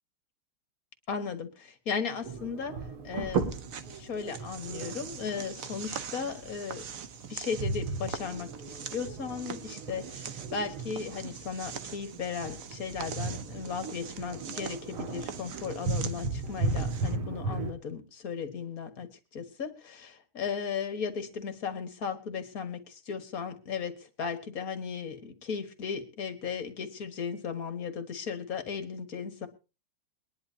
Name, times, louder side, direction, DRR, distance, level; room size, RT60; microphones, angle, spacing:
voice 1, 1.1-2.8 3.0-3.5 3.9-6.8 7.3-29.5, left 6 dB, 45° left, 9 dB, 1.7 m, -36 dB
sound 1, 2.2-17.7, right 4 dB, 85° right, 2.4 m, -36 dB
sound 2, 3.3-17.2, right 7 dB, 60° right, 0.9 m, -44 dB
22.5 x 10.5 x 2.8 m, 0.31 s
omnidirectional pair, 2.3 m